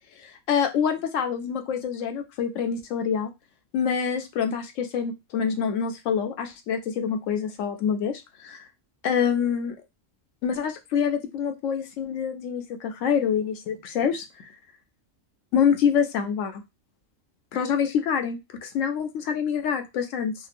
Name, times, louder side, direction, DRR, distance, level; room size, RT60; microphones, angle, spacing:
voice 1, 0.5-3.3 3.7-8.6 9.0-9.7 10.4-14.3 15.5-16.6 17.5-20.3, left 7 dB, 75° left, 6 dB, 0.9 m, -26 dB
2.9 x 2.1 x 2.4 m, 0.22 s
omnidirectional pair, 1.4 m